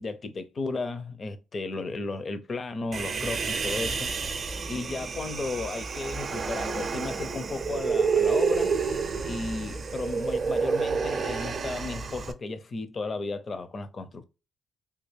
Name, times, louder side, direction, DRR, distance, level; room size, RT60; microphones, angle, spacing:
voice 1, 0.0-4.1 4.7-8.7 9.2-14.2, left 3 dB, 40° left, 0.6 m, -34 dB
Human voice, 2.9-12.3, right 5 dB, 45° right, 0.5 m, -29 dB
3.4 x 2.4 x 3.2 m
cardioid pair, 90°, 0 cm